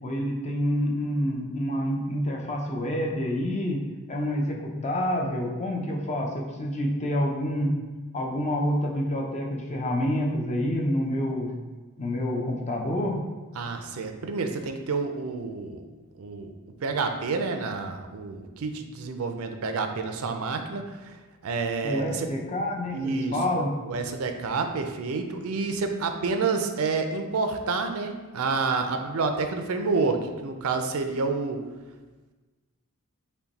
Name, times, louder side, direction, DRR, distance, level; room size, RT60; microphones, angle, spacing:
voice 1, 0.0-3.8 4.1-7.7 8.1-11.5 12.0-13.2 21.8-23.9, equal, 30° left, 0 dB, 0.6 m, -28 dB
voice 2, 13.6-15.8 16.2-16.5 16.8-21.1 21.4-22.3 22.9-23.4 23.8-31.6, right 4 dB, 65° right, 6 dB, 0.5 m, -29 dB
5.7 x 2.2 x 4.0 m, 1.3 s
head